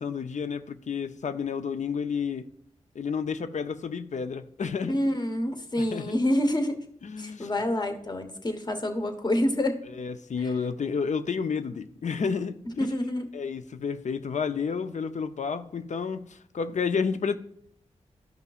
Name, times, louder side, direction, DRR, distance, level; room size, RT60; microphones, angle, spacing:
voice 1, 0.0-2.4 2.9-4.9 5.8-6.1 7.0-7.5 10.0-12.6 13.3-17.4, left 6 dB, 70° left, 0.5 m, -30 dB
voice 2, 4.9-6.8 7.2-9.8 10.4-10.5 12.8-13.3, left 1 dB, 35° left, 1.2 m, -27 dB
13.0 x 5.4 x 2.4 m
wide cardioid pair, 70°, 13 cm